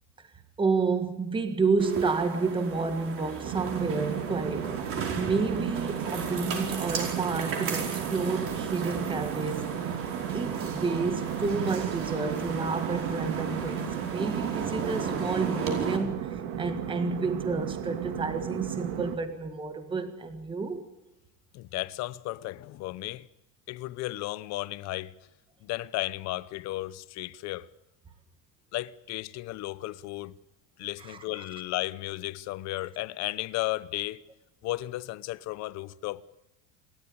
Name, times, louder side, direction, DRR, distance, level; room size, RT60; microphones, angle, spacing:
voice 1, 0.6-9.9 10.3-20.8 31.0-31.4, right 4 dB, 15° right, 1.6 m, -30 dB
sound 1, 1.8-16.0, right 5 dB, 35° right, 5.0 m, -35 dB
sound 2, 3.4-19.2, right 9 dB, 60° right, 2.7 m, -35 dB
voice 2, 21.5-23.3 23.7-25.1 25.6-27.7 28.7-30.3 30.8-34.2 34.6-36.2, left 18 dB, 45° left, 0.8 m, -34 dB
28.0 x 13.0 x 8.6 m
cardioid pair, 150°, 37 cm